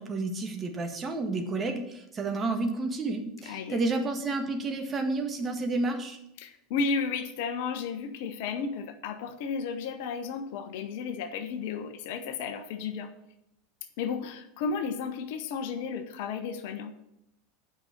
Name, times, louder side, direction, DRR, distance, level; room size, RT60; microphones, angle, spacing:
voice 1, 0.0-6.2, right 3 dB, 25° right, 4 dB, 1.7 m, -30 dB
voice 2, 3.4-3.8 6.4-13.1 14.0-16.9, left 5 dB, 60° left, 7 dB, 1.1 m, -33 dB
8.9 x 5.9 x 6.6 m, 0.83 s
figure-of-eight pair, 80°, 0 cm